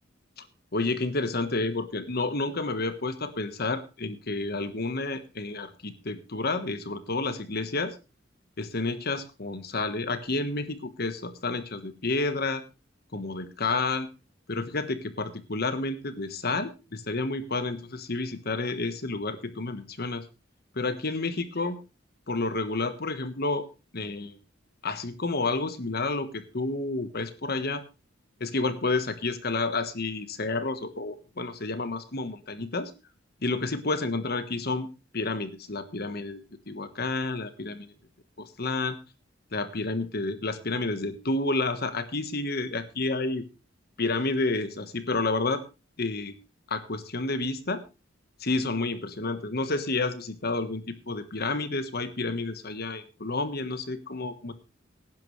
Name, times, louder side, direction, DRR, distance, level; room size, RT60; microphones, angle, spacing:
voice 1, 0.7-7.9 8.6-12.6 13.1-14.1 14.5-20.2 20.7-21.8 22.3-23.6 23.9-24.4 24.8-27.8 28.4-32.9 33.4-34.9 35.1-36.4 36.7-37.9 38.4-39.0 39.5-43.4 44.0-45.6 46.0-46.3 46.7-47.8 48.4-54.5, left 3 dB, 55° left, 11 dB, 1.3 m, -30 dB
17.5 x 10.5 x 3.2 m, 0.29 s
head